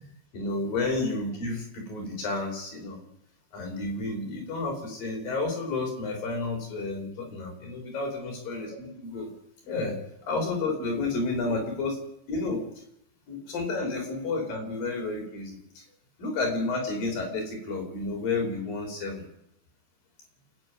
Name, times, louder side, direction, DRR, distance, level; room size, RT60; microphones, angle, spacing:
voice 1, 0.3-3.0 3.5-9.3 9.6-12.0 12.3-12.6 13.3-15.8 16.2-19.2, left 3 dB, 50° left, 2 dB, 6.9 m, -31 dB
28.5 x 11.0 x 9.6 m, 0.77 s
omnidirectional pair, 5.2 m